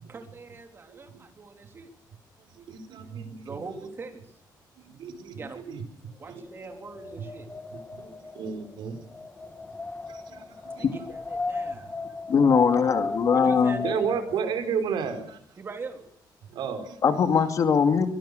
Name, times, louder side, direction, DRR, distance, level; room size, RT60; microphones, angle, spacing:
voice 1, 0.1-1.9 3.4-4.3 5.4-5.6 6.2-7.5 10.7-11.9 13.3-14.0 15.6-16.0, right 4 dB, 30° right, 5 dB, 3.8 m, -41 dB
voice 2, 2.7-3.6 4.8-5.8 6.3-6.4 7.9-8.1 8.3-9.0 10.1-10.8 13.8-15.4 16.5-17.0, right 7 dB, 80° right, 8 dB, 4.5 m, -32 dB
Wind, 6.5-14.4, left 3 dB, 15° left, 1.8 m, -36 dB
voice 3, 12.3-13.8 17.0-18.1, left 6 dB, 45° left, 8 dB, 2.5 m, -21 dB
24.5 x 18.0 x 6.8 m, 0.67 s
cardioid pair, 170°, 8 cm